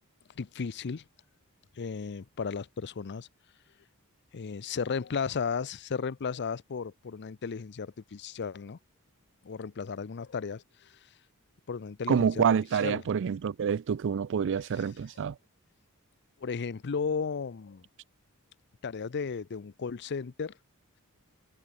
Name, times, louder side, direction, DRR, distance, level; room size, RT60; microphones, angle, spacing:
voice 1, 0.3-1.1 1.7-3.3 4.3-8.8 9.4-11.1 11.7-12.5 12.7-13.0 14.7-14.9 16.4-17.9 18.8-20.6, left 5 dB, 50° left, 0.5 m, -35 dB
voice 2, 12.1-15.4, right 7 dB, 55° right, 0.4 m, -27 dB
head